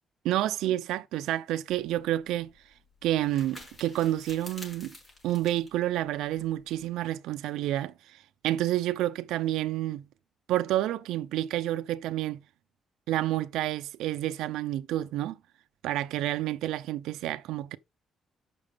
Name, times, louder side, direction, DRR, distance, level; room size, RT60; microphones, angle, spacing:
voice 1, 0.2-2.5 3.0-4.9 5.2-7.9 8.4-10.1 10.5-12.4 13.1-15.4 15.8-17.8, right 14 dB, 90° right, 0.6 m, -29 dB
sound 1, 1.7-6.9, left 1 dB, 20° left, 7.1 m, -50 dB
7.5 x 6.2 x 5.0 m
cardioid pair, 90°, 0 cm